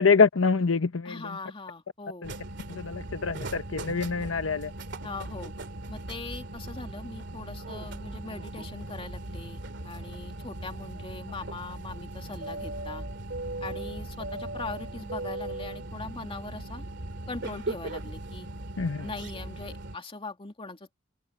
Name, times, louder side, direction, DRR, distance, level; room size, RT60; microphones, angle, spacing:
voice 1, 0.0-1.2 2.2-2.3 2.7-4.7 18.8-19.1, left 4 dB, 80° left, 0.9 m, -25 dB
voice 2, 1.0-2.3 5.0-5.5 5.9-13.0 13.6-16.8 17.3-18.5 19.0-20.9, left 3 dB, 30° left, 2.6 m, -40 dB
sound 1, 2.2-20.0, right 2 dB, 65° right, 2.5 m, -38 dB
head